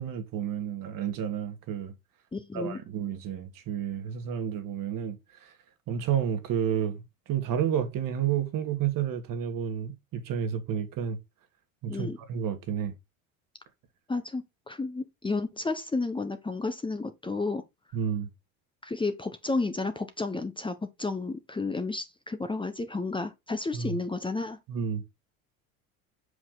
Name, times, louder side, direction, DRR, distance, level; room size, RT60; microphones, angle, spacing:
voice 1, 0.0-1.9 2.5-5.2 5.4-5.5 5.9-7.0 7.3-11.2 11.8-12.9 17.9-18.3 23.7-24.0 24.7-25.0, right 8 dB, 50° right, 1.8 m, -30 dB
voice 2, 2.3-2.8 11.9-12.2 14.1-17.6 18.8-24.6, left 3 dB, 10° left, 0.9 m, -32 dB
6.1 x 5.0 x 3.8 m
hypercardioid pair, 85°, 41 cm